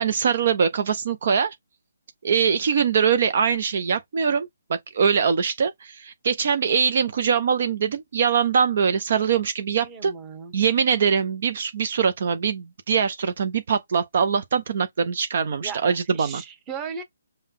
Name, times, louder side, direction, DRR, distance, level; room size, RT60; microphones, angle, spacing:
voice 1, 0.0-1.6 2.2-10.1 10.5-16.4, right 6 dB, 50° right, 0.5 m, -23 dB
voice 2, 9.8-10.5 15.6-15.8 16.1-17.0, right 6 dB, 15° right, 1.0 m, -36 dB
5.5 x 2.2 x 3.5 m
hypercardioid pair, 160°, 0 cm